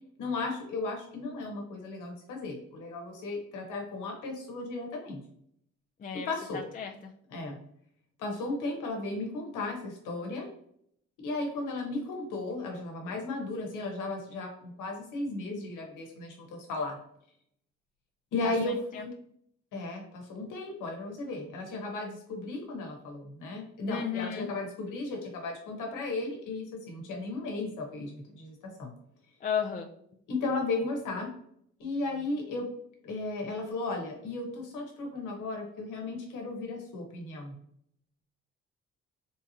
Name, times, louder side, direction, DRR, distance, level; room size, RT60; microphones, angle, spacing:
voice 1, 0.2-5.2 6.1-6.6 7.3-7.6 8.2-10.5 11.2-17.0 18.3-19.1 19.7-28.9 30.3-31.3 31.8-32.6 33.0-37.5, left 2 dB, 90° left, 1 dB, 1.1 m, -35 dB
voice 2, 6.5-6.9 18.4-19.1 23.9-24.5 29.4-29.9, left 7 dB, 30° left, 2 dB, 0.3 m, -34 dB
3.5 x 2.7 x 2.7 m, 0.69 s
cardioid pair, 90°, 30 cm